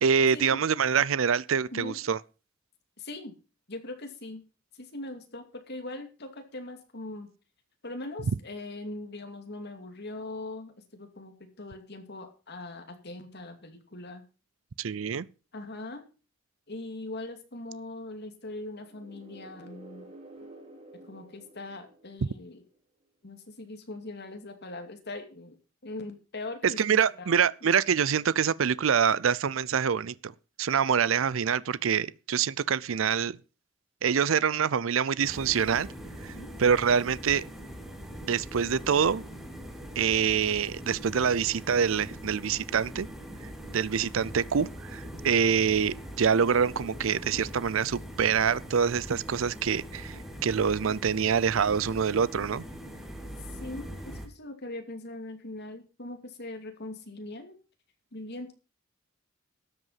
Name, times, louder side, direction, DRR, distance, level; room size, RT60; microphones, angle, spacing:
voice 1, 0.0-2.2 14.8-15.3 26.6-33.4 34.0-35.9 36.2-36.3 36.6-37.4 38.3-39.2 40.0-43.1 43.7-52.6, right 7 dB, 75° right, 0.5 m, -25 dB
voice 2, 3.0-3.3 3.7-4.4 4.7-7.3 7.8-14.2 15.5-16.0 16.7-20.1 21.1-22.6 23.2-25.6 25.8-27.3 27.6-27.7 36.3-36.5 53.5-57.6 58.1-58.5, left 2 dB, 55° left, 2.5 m, -41 dB
sound 1, 18.8-22.6, right 2 dB, 30° right, 4.1 m, -50 dB
sound 2, 35.2-54.3, equal, ahead, 2.2 m, -42 dB
13.0 x 8.1 x 5.7 m
head